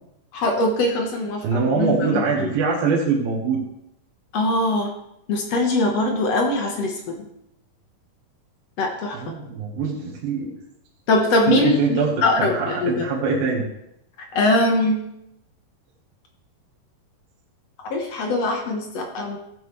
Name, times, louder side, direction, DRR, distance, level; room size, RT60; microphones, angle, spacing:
voice 1, 0.3-1.4 1.8-2.5 4.3-4.9 5.3-7.2 8.8-9.3 11.1-13.1 14.3-15.0 17.9-19.4, left 2 dB, 65° left, 2 dB, 1.7 m, -22 dB
voice 2, 1.4-3.6 9.1-10.5 11.5-13.6, right 4 dB, 70° right, -3 dB, 3.0 m, -23 dB
15.5 x 7.7 x 3.2 m, 0.79 s
omnidirectional pair, 4.5 m